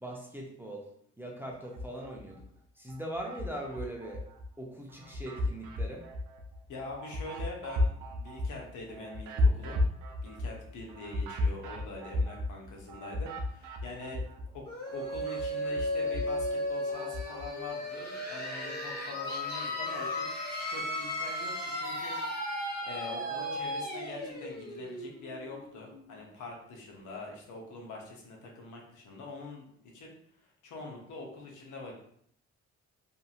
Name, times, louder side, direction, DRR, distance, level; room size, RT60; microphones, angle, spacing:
voice 1, 0.0-0.9 1.2-2.4 2.8-4.2 4.6-6.0, right 1 dB, 5° right, -1 dB, 0.5 m, -40 dB
sound 1, 1.6-2.5 2.9-4.5 4.9-14.6 14.9-17.5, left 2 dB, 85° right, 0.5 m, -34 dB
voice 2, 6.7-9.8 10.2-14.2 14.5-22.2 22.5-30.1 30.4-31.9, left 3 dB, 80° left, 0 dB, 0.8 m, -44 dB
sound 2, 14.7-26.2, left 1 dB, 35° left, 1.4 m, -35 dB
2.7 x 2.6 x 2.4 m, 0.67 s
cardioid pair, 90°, 30 cm